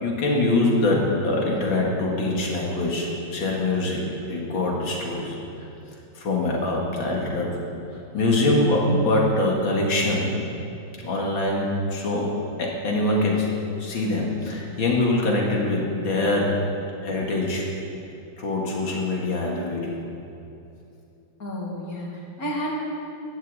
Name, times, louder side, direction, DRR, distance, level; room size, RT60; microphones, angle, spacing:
voice 1, 0.0-5.4 6.2-7.6 8.1-10.4 11.0-13.5 13.8-16.6 17.0-17.7 18.4-20.0, left 2 dB, 75° left, -2 dB, 2.7 m, -24 dB
voice 2, 21.4-22.7, equal, 45° left, -4 dB, 2.8 m, -31 dB
12.0 x 7.7 x 8.5 m, 2.7 s
omnidirectional pair, 2.2 m